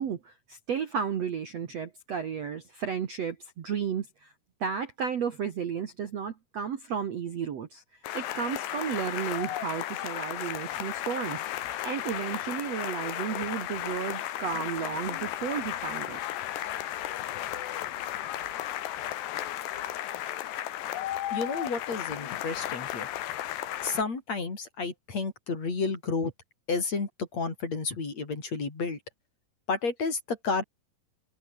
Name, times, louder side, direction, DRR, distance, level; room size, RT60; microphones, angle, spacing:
voice 1, 0.0-4.3 4.6-16.2, right 7 dB, 50° right, 2.2 m, -33 dB
sound 1, 8.0-24.0, left 13 dB, 80° left, 3.7 m, -34 dB
voice 2, 21.3-23.1 23.8-26.3 26.7-29.0 29.7-30.6, left 4 dB, 40° left, 5.7 m, -31 dB
omnidirectional pair, 4.8 m